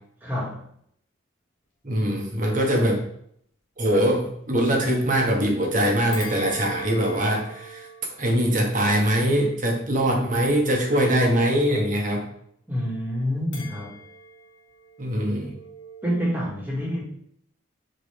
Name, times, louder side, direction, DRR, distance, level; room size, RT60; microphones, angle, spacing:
voice 1, 0.2-0.7 12.7-14.0 16.0-17.0, equal, 10° right, -6 dB, 1.9 m, -27 dB
voice 2, 1.8-3.0 3.8-7.9 8.2-12.3 15.0-15.6, equal, 40° right, 0 dB, 1.3 m, -22 dB
sound 1, 6.1-10.6 13.5-16.1, right 1 dB, 75° left, 1.7 m, -42 dB
6.2 x 4.5 x 3.4 m, 0.68 s
head